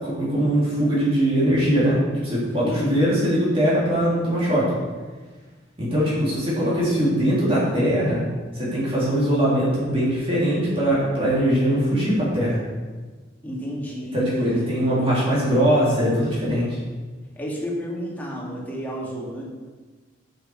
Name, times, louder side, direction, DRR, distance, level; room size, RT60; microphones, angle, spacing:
voice 1, 0.0-4.6 5.8-8.2 8.5-12.6 14.1-16.8, equal, 30° right, -8 dB, 3.6 m, -21 dB
voice 2, 2.6-3.1 13.4-14.9 17.4-19.4, equal, 10° left, -5 dB, 2.5 m, -31 dB
8.4 x 7.8 x 6.5 m, 1.4 s
head